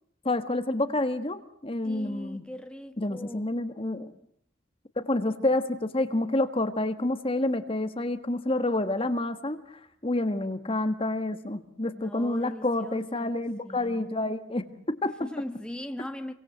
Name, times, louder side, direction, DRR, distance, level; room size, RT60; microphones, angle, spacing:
voice 1, 0.2-2.4 3.0-4.1 5.0-15.2, left 2 dB, 30° left, 1.5 m, -28 dB
voice 2, 1.8-3.5 11.9-13.3 13.6-14.1 15.2-16.3, left 1 dB, 5° left, 1.4 m, -39 dB
28.5 x 23.5 x 8.0 m
head